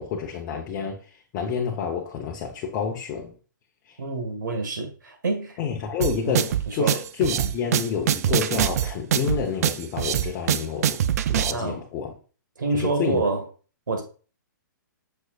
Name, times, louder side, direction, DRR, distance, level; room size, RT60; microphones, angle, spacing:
voice 1, 0.0-3.3 3.9-4.0 5.6-11.0 11.3-12.1 12.7-13.2, left 7 dB, 30° left, 1.0 m, -29 dB
voice 2, 4.0-5.6 6.2-6.4 6.7-7.0 11.5-11.8 12.6-13.4 13.9-14.0, right 3 dB, 75° right, 1.9 m, -27 dB
sound 1, 6.0-11.5, right 10 dB, 50° right, 0.4 m, -24 dB
6.7 x 6.1 x 2.5 m
figure-of-eight pair, 125°, 10 cm